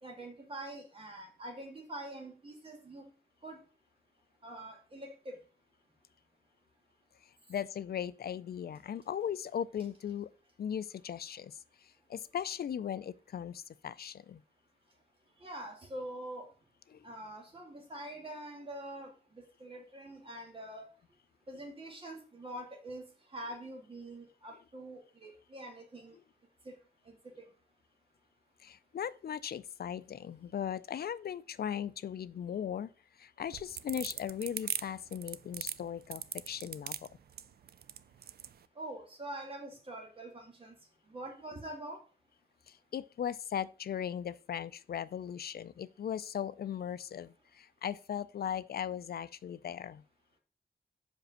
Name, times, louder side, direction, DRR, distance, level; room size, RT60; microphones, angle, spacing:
voice 1, 0.0-3.0 3.4-3.6 4.4-5.4 15.4-16.5 17.0-20.9 21.5-23.0 23.3-26.2 26.6-26.7 27.1-27.5 38.8-40.8 41.1-42.0, right 1 dB, 35° right, 2.3 m, -45 dB
voice 2, 7.5-10.3 10.6-14.4 16.9-17.1 28.6-32.9 33.2-37.1 42.7-50.0, left 9 dB, 70° left, 0.5 m, -38 dB
sound 1, 33.4-38.5, right 9 dB, 70° right, 0.4 m, -39 dB
5.2 x 5.2 x 6.3 m
wide cardioid pair, 135°, 17 cm